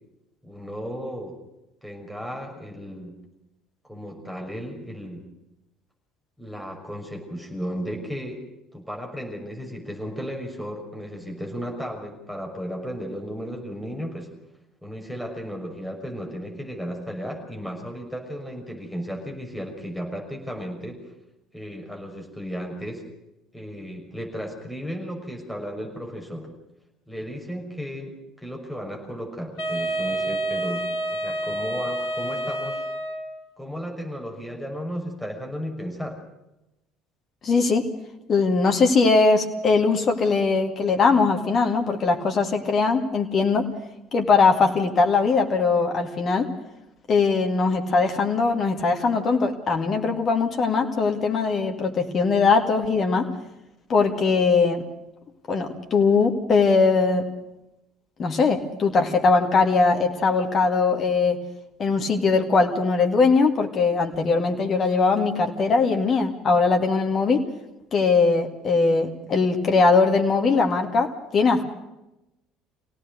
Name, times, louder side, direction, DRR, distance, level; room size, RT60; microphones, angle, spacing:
voice 1, 0.4-1.4 1.8-3.1 3.8-5.2 6.4-8.4 8.7-14.3 14.8-21.0 21.5-23.1 23.5-26.5 27.1-32.8 33.6-36.2, equal, ahead, 1 dB, 6.1 m, -34 dB
Wind instrument woodwind instrument, 29.6-33.4, right 1 dB, 60° left, 2.8 m, -28 dB
voice 2, 37.4-37.9 38.3-43.7 44.1-46.5 47.1-53.3 53.9-54.8 55.5-57.3 58.2-61.4 61.8-67.4 67.9-71.6, left 4 dB, 35° left, 3 dB, 2.2 m, -20 dB
25.0 x 17.5 x 6.6 m, 0.92 s
figure-of-eight pair, 60°, 0 cm